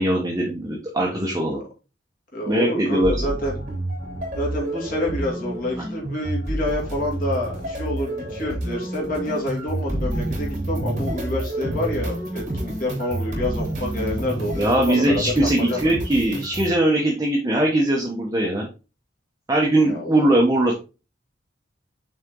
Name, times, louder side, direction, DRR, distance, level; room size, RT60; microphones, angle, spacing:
voice 1, 0.0-1.6 2.4-3.3 14.6-18.7 19.5-20.8, right 1 dB, 20° right, -2 dB, 1.1 m, -21 dB
voice 2, 2.3-3.5 4.4-15.9 19.8-20.3, left 1 dB, 50° left, -2 dB, 2.6 m, -28 dB
sound 1, 3.0-16.7, right 1 dB, 40° right, 3.2 m, -29 dB
6.5 x 4.5 x 3.8 m, 0.31 s
head